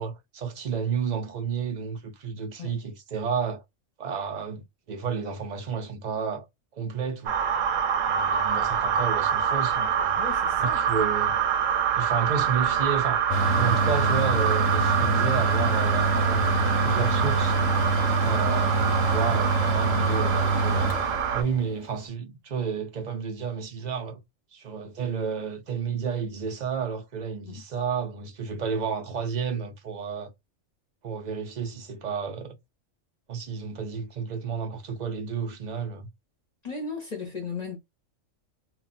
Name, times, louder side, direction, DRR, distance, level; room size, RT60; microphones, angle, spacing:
voice 1, 0.0-3.6 4.0-6.5 6.7-7.3 8.0-10.2 10.6-11.4 12.0-13.2 13.6-17.6 18.2-20.9 21.3-24.2 24.5-30.3 31.0-32.6 33.3-36.1, right 6 dB, 45° right, 0.6 m, -31 dB
sound 1, 7.3-21.4, right 8 dB, 80° right, 1.0 m, -26 dB
voice 2, 10.2-10.8 27.4-27.6 36.6-37.8, left 4 dB, 40° left, 0.7 m, -36 dB
Mechanical fan, 13.3-21.7, right 2 dB, 70° left, 0.8 m, -25 dB
2.3 x 2.2 x 3.9 m
omnidirectional pair, 1.4 m